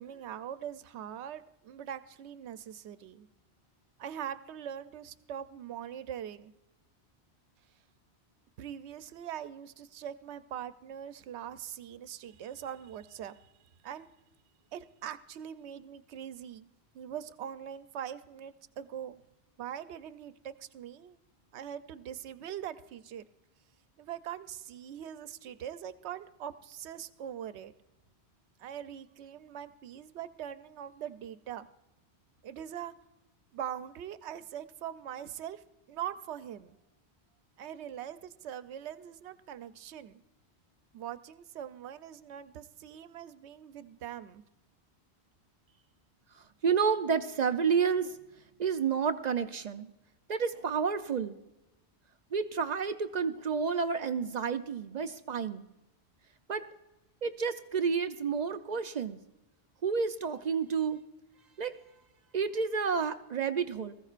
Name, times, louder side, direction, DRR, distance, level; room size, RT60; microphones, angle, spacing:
voice 1, 0.0-3.3 4.0-6.5 8.6-14.1 14.7-16.7 16.9-19.2 19.6-21.2 21.5-23.2 24.0-27.7 28.6-31.7 32.4-32.9 33.5-36.8 37.6-40.2 40.9-44.4, right 10 dB, 85° right, 13 dB, 0.9 m, -42 dB
voice 2, 46.6-48.2 48.6-49.9 50.3-51.4 52.3-55.6 56.5-56.6 57.2-59.2 59.8-61.0 61.6-61.7 62.3-63.9, right 6 dB, 55° right, 9 dB, 0.5 m, -30 dB
19.5 x 14.5 x 2.4 m, 0.96 s
omnidirectional pair, 1.1 m